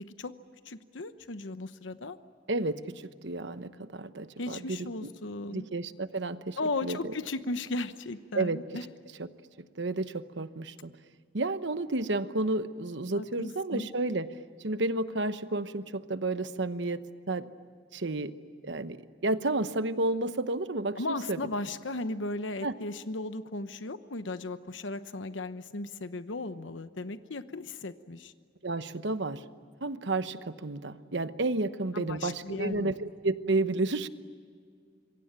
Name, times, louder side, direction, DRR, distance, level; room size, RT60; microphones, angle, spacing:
voice 1, 0.7-2.2 4.4-5.7 6.6-8.8 13.1-13.9 21.0-28.3 31.9-32.9, left 2 dB, 85° left, 11 dB, 1.0 m, -36 dB
voice 2, 2.5-5.1 5.5-7.1 8.3-8.6 9.2-9.3 9.8-10.9 11.3-14.3 14.6-17.5 17.9-18.3 18.6-21.4 22.6-22.7 28.6-29.4 29.8-34.1, right 2 dB, 70° right, 12 dB, 1.1 m, -31 dB
26.5 x 23.5 x 8.9 m, 2.1 s
head